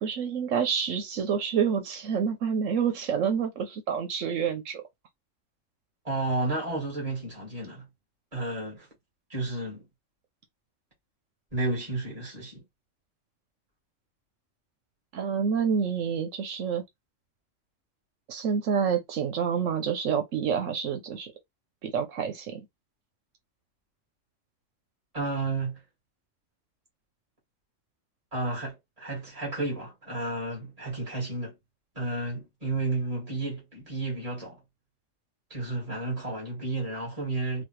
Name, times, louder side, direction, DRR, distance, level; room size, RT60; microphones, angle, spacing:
voice 1, 0.0-4.8 15.1-16.8 18.3-21.3 21.8-22.6, right 7 dB, 85° right, 1.1 m, -28 dB
voice 2, 6.0-7.9 8.3-8.9 9.3-9.8 11.5-12.6 25.1-25.8 28.3-31.5 32.0-34.6 35.5-37.6, right 2 dB, 30° right, 2.3 m, -32 dB
4.1 x 2.4 x 3.1 m
omnidirectional pair, 1.3 m